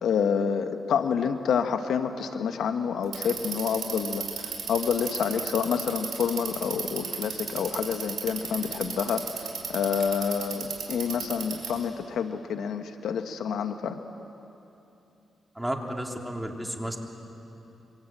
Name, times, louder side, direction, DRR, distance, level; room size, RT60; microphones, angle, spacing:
voice 1, 0.0-14.0, left 7 dB, 80° left, 7 dB, 1.2 m, -28 dB
Bicycle, 3.0-11.8, right 7 dB, 75° right, 5.2 m, -34 dB
voice 2, 15.5-17.0, right 1 dB, 5° right, 1 dB, 3.4 m, -32 dB
27.0 x 23.5 x 8.9 m, 2.9 s
cardioid pair, 75°, 0 cm